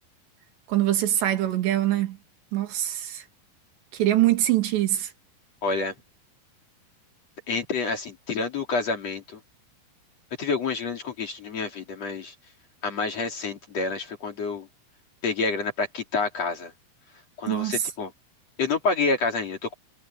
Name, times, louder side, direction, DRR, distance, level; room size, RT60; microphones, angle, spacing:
voice 1, 0.7-2.2 2.5-3.3 3.9-5.1 17.5-17.9, right 13 dB, 80° right, 4.5 m, -23 dB
voice 2, 5.6-5.9 7.5-9.4 10.4-12.3 12.8-14.7 15.2-16.7 17.4-18.1 18.6-19.7, left 4 dB, 40° left, 3.6 m, -28 dB
omnidirectional pair, 4.9 m